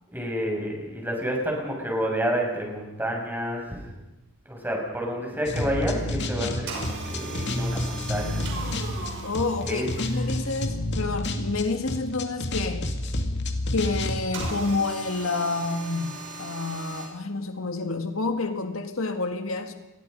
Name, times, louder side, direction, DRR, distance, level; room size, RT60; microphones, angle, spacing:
voice 1, 0.1-3.8 4.5-8.7 9.6-9.9, equal, 10° right, 0 dB, 6.9 m, -29 dB
sound 1, 5.4-14.5, left 1 dB, 55° left, 2.4 m, -30 dB
sound 2, 6.7-10.6 14.3-17.1, right 2 dB, 60° right, 5.9 m, -38 dB
voice 2, 9.2-12.9 13.7-19.7, left 3 dB, 80° left, 6 dB, 1.9 m, -29 dB
29.5 x 22.5 x 5.4 m, 1.0 s
head